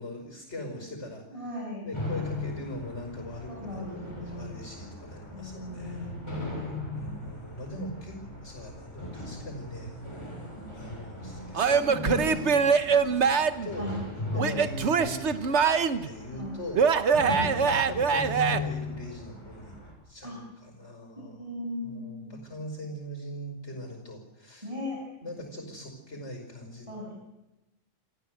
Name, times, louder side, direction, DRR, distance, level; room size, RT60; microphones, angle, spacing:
voice 1, 0.0-1.2 1.8-6.1 6.6-9.9 10.7-14.0 14.3-15.6 16.0-16.8 17.7-19.7 20.1-21.5 21.8-24.7 25.2-26.9, left 1 dB, 55° left, 3 dB, 5.8 m, -41 dB
voice 2, 1.3-1.9 3.5-4.5 5.3-6.4 13.8-14.0 14.3-14.6 16.3-16.6 17.2-17.4 20.2-20.4 21.2-22.3 24.6-25.0 26.9-27.1, left 1 dB, 25° right, -4 dB, 7.1 m, -37 dB
sound 1, 1.9-19.9, left 2 dB, 20° left, 6.8 m, -38 dB
Male speech man speaking / Yell / Laughter, 11.5-13.7 14.4-16.1 16.7-18.6, right 6 dB, 60° right, 1.3 m, -23 dB
28.0 x 15.0 x 8.0 m, 0.97 s
omnidirectional pair, 1.3 m